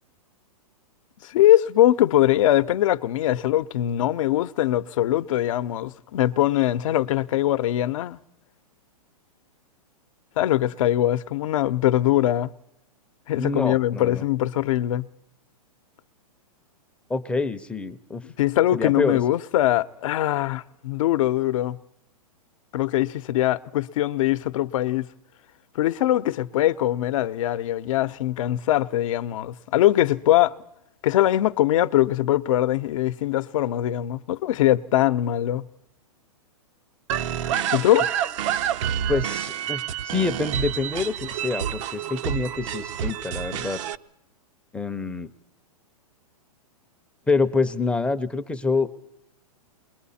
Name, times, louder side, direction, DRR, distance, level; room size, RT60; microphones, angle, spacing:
voice 1, 1.2-8.2 10.4-12.5 13.3-15.1 18.2-21.8 22.7-25.1 25.7-30.5 31.0-35.7 37.7-38.1, left 13 dB, 60° left, 0.8 m, -22 dB
voice 2, 13.4-14.2 17.1-18.2 18.7-19.2 39.1-43.8 44.7-45.3 47.3-48.9, left 4 dB, 5° left, 0.7 m, -26 dB
sound 1, 37.1-44.0, right 10 dB, 50° right, 0.8 m, -28 dB
28.0 x 21.5 x 4.2 m
hypercardioid pair, 135°, 19 cm